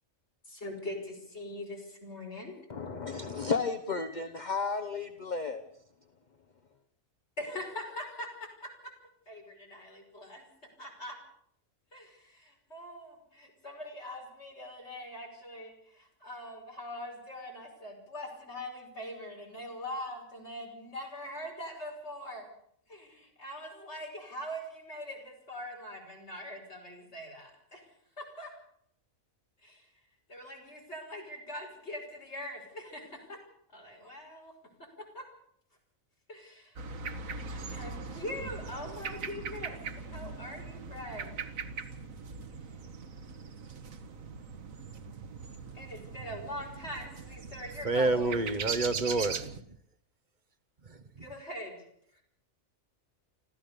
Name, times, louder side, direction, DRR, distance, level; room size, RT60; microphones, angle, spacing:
voice 1, 0.5-2.6 7.4-8.3 9.3-10.5 10.8-11.2 11.9-22.5 22.9-27.8 28.2-28.5 29.6-29.8 30.3-33.4 33.7-34.5 35.1-35.2 36.3-36.7 37.5-41.4 45.7-48.4 51.2-51.8, left 1 dB, 55° left, 1 dB, 6.0 m, -42 dB
voice 2, 2.7-5.6, left 4 dB, 35° left, 6 dB, 1.1 m, -33 dB
sound 1, 36.8-49.6, right 5 dB, 80° right, 1.7 m, -40 dB
voice 3, 47.8-49.6, right 3 dB, 35° right, 9 dB, 1.3 m, -28 dB
25.5 x 15.5 x 6.8 m, 0.69 s
omnidirectional pair, 1.4 m